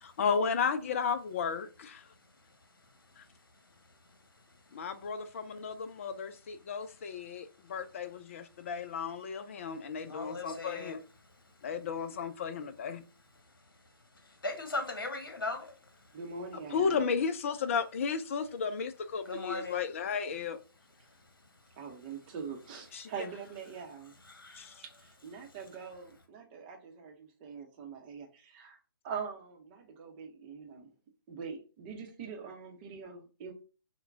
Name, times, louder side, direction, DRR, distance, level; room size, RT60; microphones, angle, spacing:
voice 1, 0.0-2.0 3.2-3.3 4.7-11.0 11.6-13.0 16.7-20.6 22.9-23.1 24.6-24.7, left 6 dB, 35° left, 0.4 m, -34 dB
voice 2, 10.0-10.9 14.1-16.1 19.2-19.8 24.3-24.8, left 2 dB, 65° left, 1.2 m, -38 dB
voice 3, 16.1-17.0 21.8-24.1 24.8-28.8 29.0-30.9 31.3-33.5, right 6 dB, 25° right, 0.8 m, -43 dB
5.7 x 2.2 x 2.6 m
figure-of-eight pair, 140°, 12 cm